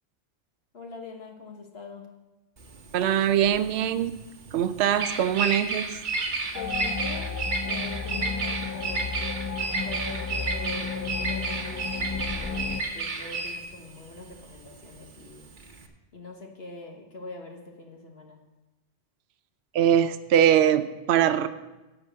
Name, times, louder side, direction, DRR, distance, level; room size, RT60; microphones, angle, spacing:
voice 1, 0.7-2.1 6.5-9.1 9.8-15.5 16.1-18.4, left 3 dB, 70° left, 1 dB, 1.5 m, -43 dB
Bird vocalization bird call bird song, 2.6-15.9, right 3 dB, 50° right, 1.2 m, -32 dB
voice 2, 2.9-4.2 4.5-6.0 19.7-21.5, right 10 dB, 75° right, 12 dB, 0.8 m, -22 dB
sound 1, 6.5-12.8, left 5 dB, 30° left, 0.3 m, -33 dB
11.0 x 5.0 x 7.5 m, 1.1 s
omnidirectional pair, 1.1 m